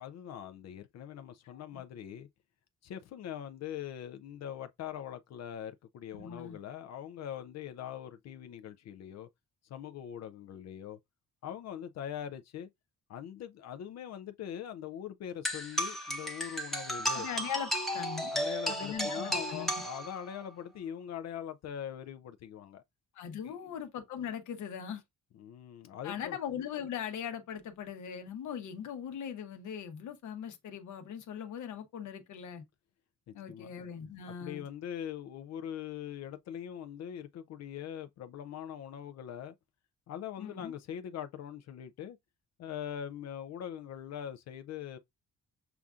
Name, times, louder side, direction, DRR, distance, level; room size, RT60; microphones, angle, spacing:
voice 1, 0.0-2.3 2.8-9.3 9.7-11.0 11.4-12.7 13.1-17.3 18.3-22.8 23.4-23.8 25.4-26.4 33.3-33.7 34.3-39.5 40.1-42.2 42.6-45.0, left 9 dB, 60° left, 0.5 m, -42 dB
voice 2, 1.5-1.8 6.1-6.6 17.1-18.3 18.7-19.7 23.1-25.0 26.0-32.6 33.3-34.6 40.4-40.7, left 8 dB, 75° left, 1.0 m, -40 dB
sound 1, 15.4-20.5, equal, ahead, 0.8 m, -34 dB
6.8 x 2.4 x 2.4 m
cardioid pair, 90°, 30 cm